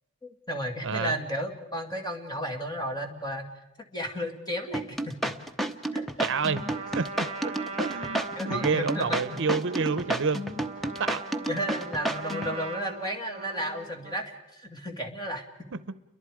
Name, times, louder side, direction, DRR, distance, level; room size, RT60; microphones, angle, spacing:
voice 1, 0.2-3.5 3.9-5.1 5.9-6.3 8.3-9.4 11.5-15.4, equal, 20° left, 4 dB, 2.3 m, -33 dB
voice 2, 0.8-1.2 6.2-6.6 6.9-7.1 7.4-10.5 11.0-11.2 15.7-15.8, right 5 dB, 60° right, 15 dB, 0.7 m, -29 dB
sound 1, 4.7-12.5, right 1 dB, ahead, 0.9 m, -31 dB
Trumpet, 6.2-14.3, right 4 dB, 30° right, 2.0 m, -40 dB
30.0 x 23.0 x 4.9 m, 0.93 s
head